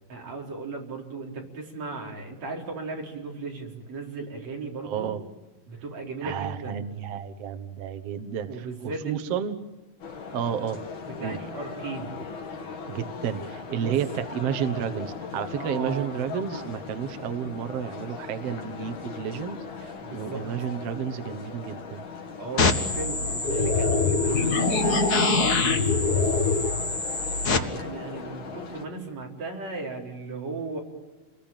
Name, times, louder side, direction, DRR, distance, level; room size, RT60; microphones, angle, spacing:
voice 1, 0.1-5.1 5.7-6.8 8.5-9.2 11.1-12.2 13.7-14.0 15.6-16.1 20.0-20.4 22.4-25.5 25.9-26.7 27.5-30.8, right 3 dB, 45° right, -1 dB, 5.5 m, -36 dB
voice 2, 4.8-5.2 6.2-9.6 10.3-10.8 11.2-11.4 12.9-22.1, right 8 dB, 70° right, 10 dB, 1.5 m, -31 dB
sound 1, 10.0-28.9, left 5 dB, 75° left, 4.8 m, -39 dB
sound 2, 22.6-27.6, left 3 dB, 55° left, 1.0 m, -23 dB
29.0 x 21.5 x 9.1 m, 1.2 s
omnidirectional pair, 4.5 m